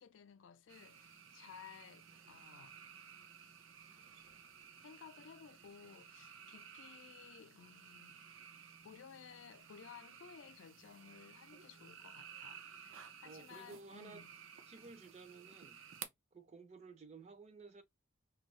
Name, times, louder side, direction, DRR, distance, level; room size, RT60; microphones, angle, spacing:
voice 1, 0.0-2.8 3.0-3.1 4.8-8.2 8.8-14.3, left 7 dB, 75° left, 0.4 m, -57 dB
sound 1, 0.7-16.0, right 7 dB, 85° right, 0.6 m, -55 dB
Sliding door, 1.9-9.4, right 2 dB, 70° right, 0.9 m, -78 dB
voice 2, 13.2-14.2 14.7-15.8 16.3-17.8, right 4 dB, 35° right, 0.5 m, -54 dB
2.6 x 2.4 x 3.0 m
head